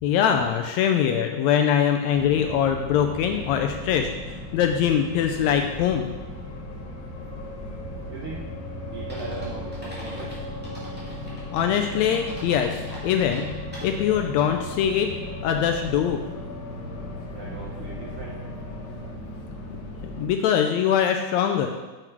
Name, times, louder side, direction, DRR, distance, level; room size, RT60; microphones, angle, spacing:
voice 1, 0.0-6.1 11.5-13.5 13.8-15.1 15.4-16.2 20.2-21.7, left 8 dB, 80° left, 5 dB, 1.7 m, -23 dB
sound 1, 2.1-20.3, left 1 dB, 60° left, 1.3 m, -36 dB
voice 2, 8.1-8.5 8.9-10.4 17.3-18.4, right 4 dB, 70° right, -3 dB, 1.4 m, -39 dB
sound 2, 9.1-14.2, equal, 5° right, 1.6 m, -43 dB
7.8 x 6.0 x 4.6 m, 1.2 s
omnidirectional pair, 3.5 m